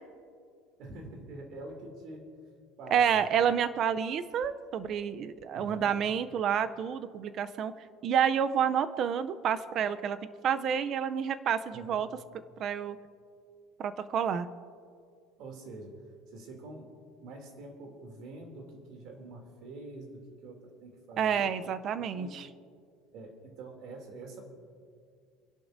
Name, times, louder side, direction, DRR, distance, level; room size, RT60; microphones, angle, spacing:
voice 1, 0.8-2.3 2.8-3.3 5.5-6.0 11.7-12.0 15.4-21.5 22.0-22.4 23.1-24.4, right 2 dB, 50° right, 2 dB, 2.8 m, -46 dB
voice 2, 2.9-7.7 8.0-10.2 10.4-12.1 12.6-13.0 13.8-14.5 21.2-22.5, right 8 dB, 35° right, 12 dB, 0.5 m, -29 dB
28.5 x 11.0 x 2.6 m, 2.2 s
cardioid pair, 165°, 0 cm